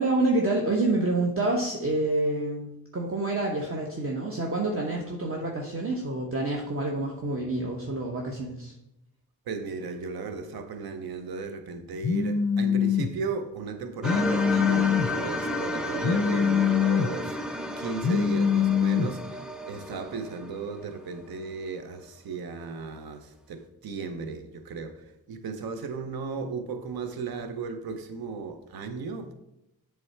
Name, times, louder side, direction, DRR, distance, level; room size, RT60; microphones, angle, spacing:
voice 1, 0.0-8.7, right 2 dB, 40° right, 0 dB, 1.2 m, -27 dB
voice 2, 9.5-29.3, right 4 dB, 80° right, 8 dB, 0.8 m, -36 dB
Telephone, 12.0-13.1 14.0-15.1 16.0-17.1 18.0-19.1, left 7 dB, 40° left, 0.6 m, -23 dB
sound 1, 14.0-21.2, left 1 dB, ahead, 0.7 m, -33 dB
7.7 x 3.5 x 4.4 m, 0.85 s
cardioid pair, 65°, 36 cm